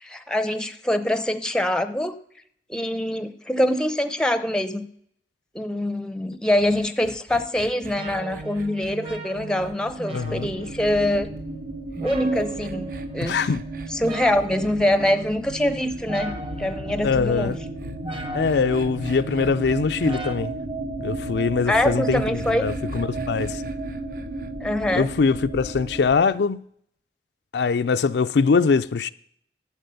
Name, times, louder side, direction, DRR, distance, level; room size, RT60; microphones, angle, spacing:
voice 1, 0.0-2.1 2.7-4.9 5.5-11.3 12.0-13.4 13.9-17.5 21.7-22.7 24.6-25.1, left 1 dB, 5° left, 0.6 m, -24 dB
sound 1, 6.6-11.0 11.9-16.0 17.4-20.1 21.7-24.5, right 2 dB, 50° right, 0.7 m, -42 dB
sound 2, 8.0-20.4, right 3 dB, 30° right, 1.3 m, -37 dB
voice 2, 10.1-10.5 13.2-13.6 17.0-17.6 18.3-20.5 21.0-23.6 24.9-26.6 27.5-29.1, left 5 dB, 75° left, 0.4 m, -22 dB
sound 3, 10.2-26.1, right 2 dB, 75° right, 2.5 m, -34 dB
11.5 x 7.2 x 6.9 m
head